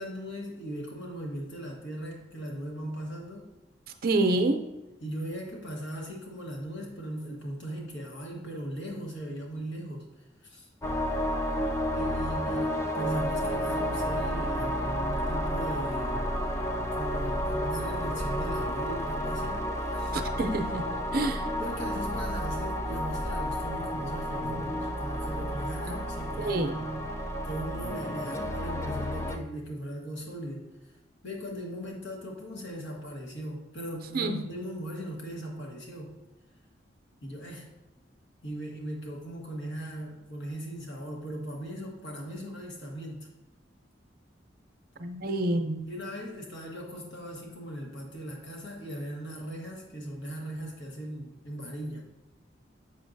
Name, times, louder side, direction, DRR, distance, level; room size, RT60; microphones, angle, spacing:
voice 1, 0.0-3.5 5.0-10.7 11.9-16.3 16.9-20.2 21.6-27.1 27.4-30.9 31.2-36.1 37.2-37.7 38.4-43.3 45.2-45.4 45.9-52.0, right 1 dB, 75° left, -1 dB, 1.3 m, -38 dB
voice 2, 4.0-4.6 20.1-20.8 21.1-21.5 25.9-26.0 26.4-26.7 34.1-34.3 45.0-45.9, right 2 dB, 55° right, 7 dB, 0.6 m, -27 dB
sound 1, 10.8-29.4, equal, 15° left, 0.4 m, -31 dB
7.0 x 5.9 x 2.6 m, 1.0 s
head